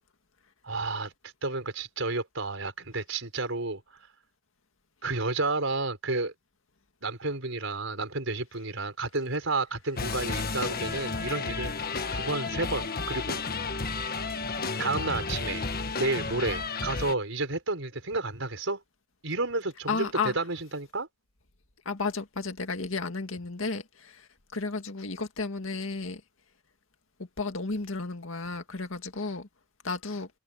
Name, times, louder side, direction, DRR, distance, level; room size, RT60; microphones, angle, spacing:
voice 1, 0.6-1.1 1.4-3.8 5.0-6.3 7.0-11.8 12.1-13.4 14.8-15.7 16.0-18.8 19.2-21.1, right 3 dB, 75° right, 5.0 m, -31 dB
sound 1, 10.0-17.1, left 4 dB, 50° left, 1.5 m, -32 dB
voice 2, 19.9-20.3 21.9-26.2 27.4-29.5 29.8-30.3, left 4 dB, 85° left, 2.0 m, -33 dB
head